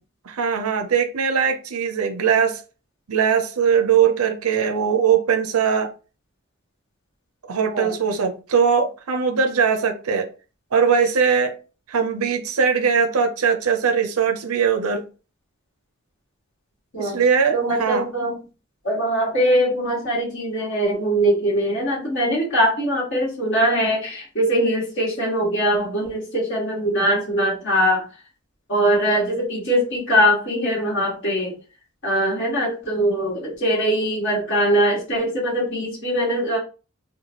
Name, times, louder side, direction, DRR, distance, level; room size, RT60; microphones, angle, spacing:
voice 1, 0.2-2.6 3.1-5.9 7.4-10.3 10.7-11.5 11.9-15.0 17.0-18.1, right 6 dB, 90° right, 0.6 m, -20 dB
voice 2, 17.5-18.4 18.8-28.0 28.7-31.5 32.0-36.6, equal, 60° left, 1.8 m, -21 dB
4.5 x 2.3 x 2.8 m
head